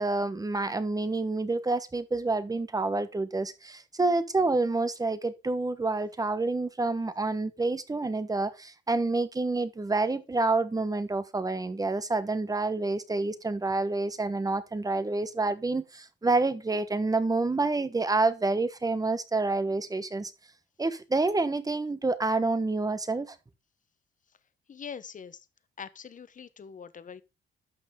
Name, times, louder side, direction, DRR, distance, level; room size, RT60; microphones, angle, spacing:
voice 1, 0.0-20.3 20.8-23.4, right 3 dB, 20° right, 1.2 m, -28 dB
voice 2, 24.7-25.4 25.8-27.2, left 7 dB, 40° left, 1.0 m, -43 dB
11.5 x 6.2 x 3.7 m
cardioid pair, 90°, 20 cm